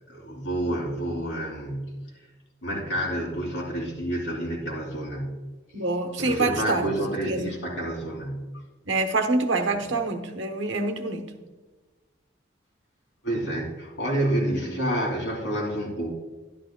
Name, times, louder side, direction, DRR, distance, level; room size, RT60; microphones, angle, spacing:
voice 1, 0.1-2.1 2.6-5.4 6.2-8.6 9.8-9.9 13.2-16.1, right 1 dB, 85° left, -1 dB, 2.8 m, -29 dB
voice 2, 5.7-6.9 7.3-7.6 8.9-11.3, right 3 dB, 85° right, 6 dB, 1.0 m, -26 dB
12.0 x 11.5 x 2.2 m, 1.2 s
head